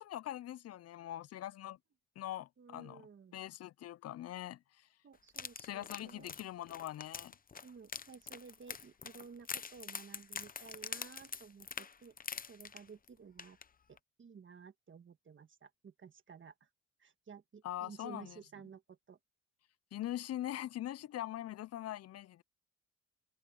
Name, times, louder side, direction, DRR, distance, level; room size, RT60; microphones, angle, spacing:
voice 1, 0.0-1.8 2.2-3.1 3.3-4.9 5.6-7.3 17.6-18.4 19.9-22.4, left 13 dB, 55° left, 0.5 m, -42 dB
voice 2, 2.6-3.4 5.0-6.3 7.6-12.1 12.5-13.6 13.9-16.7 17.0-19.2, right 6 dB, 40° right, 1.6 m, -54 dB
sound 1, 5.3-13.1 13.4-13.6 14.0-14.1, left 6 dB, 30° left, 0.8 m, -45 dB
cardioid pair, 90°, 30 cm